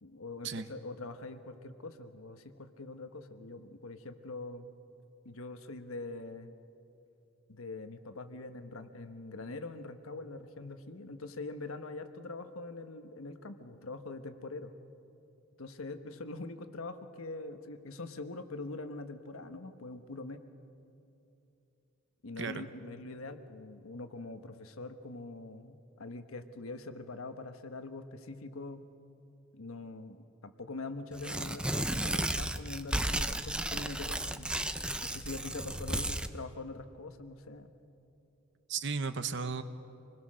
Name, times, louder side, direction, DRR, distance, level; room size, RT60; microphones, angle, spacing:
voice 1, 0.0-4.7 5.2-6.5 7.5-14.7 15.6-20.4 22.2-28.9 29.5-30.2 30.4-34.5 35.0-37.7, left 2 dB, 85° left, 9 dB, 1.1 m, -43 dB
voice 2, 22.4-22.7 38.7-39.6, right 5 dB, 60° right, 11 dB, 0.8 m, -35 dB
Tearing, 31.1-36.3, right 1 dB, 5° right, 0.5 m, -34 dB
26.5 x 20.5 x 6.3 m, 2.9 s
head